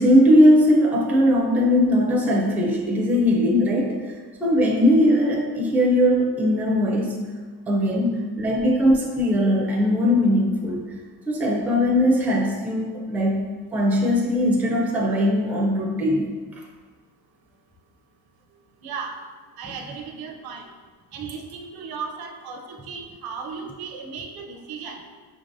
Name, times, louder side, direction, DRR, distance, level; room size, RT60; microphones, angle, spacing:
voice 1, 0.0-7.2 7.7-10.8 11.3-13.4 13.7-16.3, equal, 5° right, -2 dB, 0.4 m, -20 dB
voice 2, 18.8-19.2 19.6-20.7 21.1-25.0, right 5 dB, 65° right, 3 dB, 0.6 m, -35 dB
5.2 x 3.1 x 2.6 m, 1.5 s
cardioid pair, 160°, 39 cm